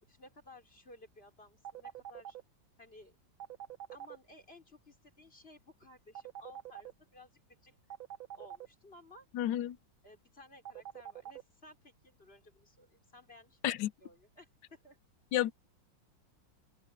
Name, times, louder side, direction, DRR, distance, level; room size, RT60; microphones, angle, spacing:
voice 1, 0.0-2.4 2.8-3.1 3.9-7.8 8.3-9.3 10.0-13.6 14.0-15.0, left 2 dB, 30° left, 4.7 m, -57 dB
sound 1, 1.6-2.4 3.4-4.2 6.1-6.9 7.9-8.7 10.6-11.4, right 11 dB, 80° right, 2.0 m, -45 dB
voice 2, 9.3-9.8 13.6-13.9 15.3-15.5, left 13 dB, 70° left, 1.4 m, -31 dB
omnidirectional pair, 2.1 m